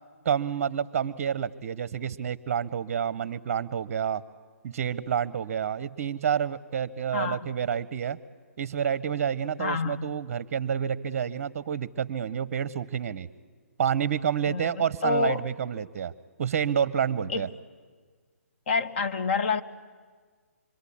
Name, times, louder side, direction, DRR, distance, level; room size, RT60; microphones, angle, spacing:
voice 1, 0.2-4.2 4.6-8.2 8.6-13.3 13.8-16.1 16.4-17.5, right 8 dB, 40° right, 18 dB, 0.7 m, -29 dB
voice 2, 9.6-10.1 14.5-15.5 17.3-17.5 18.7-19.6, left 4 dB, 45° left, 9 dB, 1.2 m, -28 dB
26.0 x 24.0 x 8.5 m, 1.6 s
hypercardioid pair, 145°, 8 cm